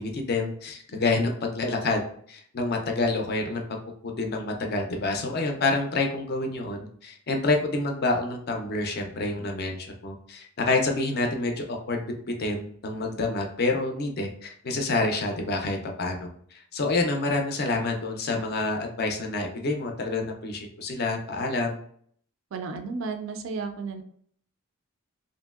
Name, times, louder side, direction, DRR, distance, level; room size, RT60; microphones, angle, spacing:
voice 1, 0.0-2.0 2.3-3.6 4.0-12.0 12.4-21.8, left 2 dB, 45° left, 3 dB, 0.4 m, -28 dB
voice 2, 22.5-24.0, right 4 dB, 60° right, 6 dB, 0.3 m, -33 dB
2.9 x 2.6 x 2.3 m, 0.62 s
head